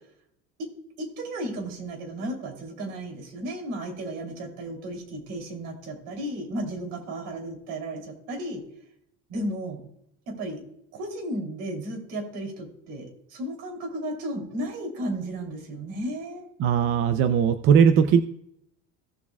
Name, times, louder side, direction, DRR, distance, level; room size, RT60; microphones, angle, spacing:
voice 1, 1.0-8.6 9.3-9.8 10.3-10.6 10.9-16.5, right 1 dB, 75° right, 2 dB, 3.1 m, -34 dB
voice 2, 16.6-18.2, right 7 dB, 40° right, 10 dB, 0.5 m, -19 dB
17.0 x 7.2 x 2.3 m, 0.74 s
cardioid pair, 160°, 32 cm